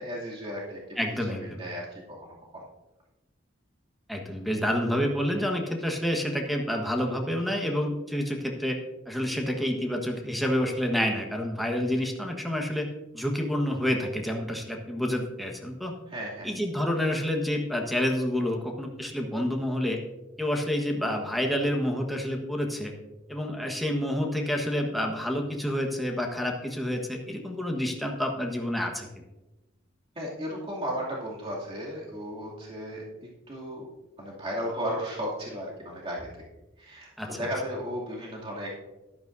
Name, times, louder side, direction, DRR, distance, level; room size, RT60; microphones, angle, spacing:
voice 1, 0.0-1.0 1.4-2.6 16.1-16.5 30.1-33.8 34.2-36.3 36.8-38.8, equal, 30° right, -5 dB, 2.6 m, -35 dB
voice 2, 1.0-1.6 4.1-8.8 9.1-12.9 13.1-15.9 16.4-20.0 20.4-22.9 23.3-29.1 37.2-37.5, equal, ahead, 1 dB, 1.3 m, -28 dB
14.0 x 12.0 x 2.7 m, 1.0 s
head